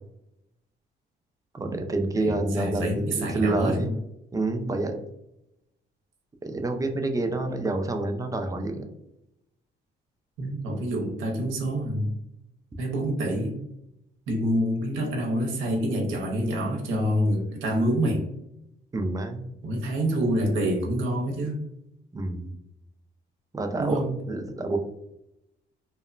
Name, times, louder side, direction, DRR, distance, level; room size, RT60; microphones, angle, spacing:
voice 1, 1.5-3.9 4.3-5.0 6.4-8.8 18.9-19.4 22.1-22.5 23.5-24.8, right 2 dB, 15° right, 4 dB, 0.4 m, -28 dB
voice 2, 2.2-3.9 10.4-12.1 12.8-13.6 14.3-18.2 19.6-21.6 23.8-24.2, equal, 80° right, 0 dB, 0.6 m, -27 dB
2.9 x 2.1 x 2.4 m, 0.83 s
cardioid pair, 90°, 20 cm